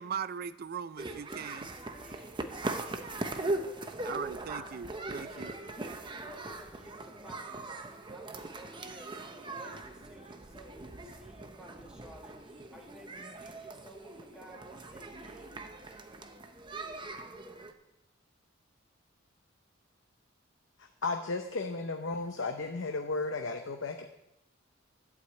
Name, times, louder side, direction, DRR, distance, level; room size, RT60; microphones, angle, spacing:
voice 1, 0.0-1.7 4.0-5.5, right 7 dB, 50° right, 16 dB, 0.4 m, -39 dB
sound 1, 1.0-17.7, right 2 dB, 25° right, 0.8 m, -40 dB
voice 2, 1.7-4.5 4.9-16.0, right 1 dB, 5° right, -2 dB, 1.9 m, -54 dB
voice 3, 21.0-24.1, left 3 dB, 70° left, 4 dB, 0.8 m, -34 dB
11.5 x 4.9 x 8.1 m, 0.89 s
head